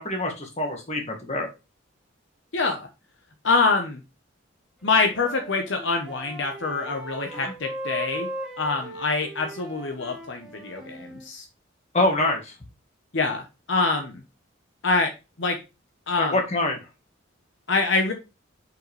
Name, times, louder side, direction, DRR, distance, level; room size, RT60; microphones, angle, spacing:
voice 1, 0.0-1.5 7.3-7.5 11.9-12.5 16.2-16.8, left 2 dB, 35° left, 2 dB, 1.9 m, -25 dB
voice 2, 2.5-2.9 3.4-4.0 4.8-8.3 8.6-11.4 13.1-14.2 14.8-15.1 15.4-15.6 16.1-16.4 17.7-18.1, left 3 dB, 65° left, 4 dB, 1.0 m, -25 dB
Wind instrument woodwind instrument, 4.8-11.3, right 1 dB, 5° right, 1.4 m, -38 dB
6.5 x 5.6 x 3.2 m, 0.27 s
head